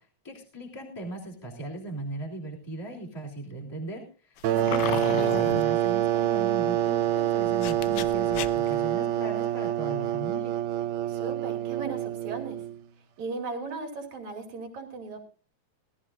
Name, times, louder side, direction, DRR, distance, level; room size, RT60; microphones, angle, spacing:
voice 1, 0.2-10.5, right 1 dB, 10° left, -2 dB, 2.9 m, -38 dB
sound 1, 4.4-5.6 7.4-8.8, left 10 dB, 85° left, 1.3 m, -34 dB
sound 2, 4.4-12.8, right 12 dB, 90° right, 2.3 m, -26 dB
voice 2, 11.1-12.6 13.2-15.2, right 4 dB, 70° right, 4 dB, 3.7 m, -37 dB
19.5 x 14.0 x 2.5 m, 0.36 s
omnidirectional pair, 3.4 m